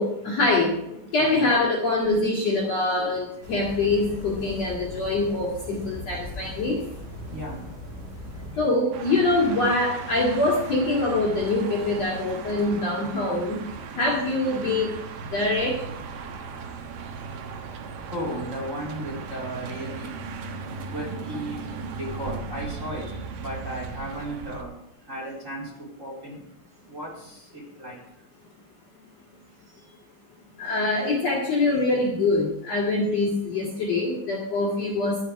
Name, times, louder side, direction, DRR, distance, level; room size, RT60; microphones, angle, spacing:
voice 1, 0.0-6.8 8.6-13.6 13.9-14.9 15.2-15.8 30.6-35.2, left 2 dB, 45° left, -3 dB, 2.8 m, -24 dB
sound 1, 3.4-8.6, left 1 dB, 40° right, 4.9 m, -39 dB
voice 2, 7.2-7.7 17.3-26.5 26.8-28.3 30.5-30.6, right 1 dB, 20° right, -3 dB, 3.5 m, -36 dB
sound 2, 8.9-24.6, right 5 dB, 65° right, 2.5 m, -37 dB
13.0 x 10.5 x 4.8 m, 0.78 s
omnidirectional pair, 5.0 m